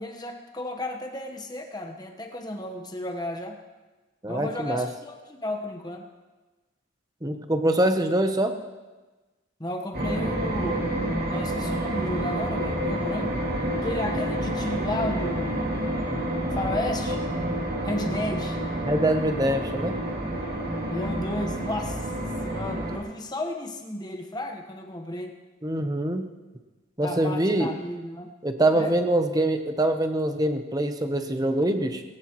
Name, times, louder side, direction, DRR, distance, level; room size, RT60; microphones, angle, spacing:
voice 1, 0.0-3.6 4.3-6.1 9.6-10.9 11.3-13.4 13.8-16.1 16.5-17.2 17.8-18.6 20.9-25.4 27.0-28.3 28.7-29.0, left 1 dB, 20° left, 4 dB, 1.2 m, -33 dB
voice 2, 4.2-4.9 7.2-8.5 18.8-20.0 25.6-26.3 27.0-27.7 28.4-32.0, right 1 dB, 20° right, 6 dB, 0.9 m, -24 dB
sound 1, 9.9-23.0, right 1 dB, 50° right, 2.9 m, -29 dB
19.0 x 17.0 x 3.1 m, 1.2 s
head